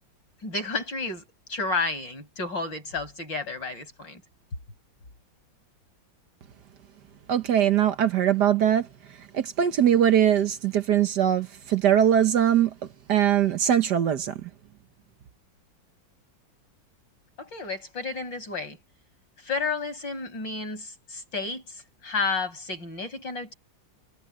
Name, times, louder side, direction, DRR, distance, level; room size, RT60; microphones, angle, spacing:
voice 1, 0.4-1.2 1.5-4.2 17.4-18.8 19.4-21.8 22.0-23.5, left 3 dB, 65° left, 7.5 m, -31 dB
voice 2, 7.3-8.9 9.3-12.7 13.1-14.5, right 10 dB, 65° right, 1.5 m, -21 dB
omnidirectional pair, 2.1 m